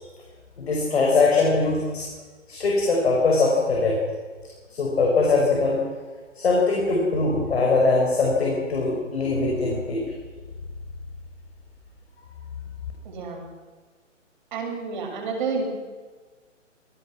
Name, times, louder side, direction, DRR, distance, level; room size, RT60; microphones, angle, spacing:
voice 1, 0.6-2.0 2.5-4.0 4.8-5.8 6.4-10.0, left 3 dB, 55° left, -1 dB, 6.2 m, -21 dB
voice 2, 13.0-13.4 14.5-15.7, right 4 dB, 40° right, 3 dB, 6.1 m, -29 dB
27.0 x 18.5 x 6.2 m, 1.4 s
figure-of-eight pair, 135°, 38 cm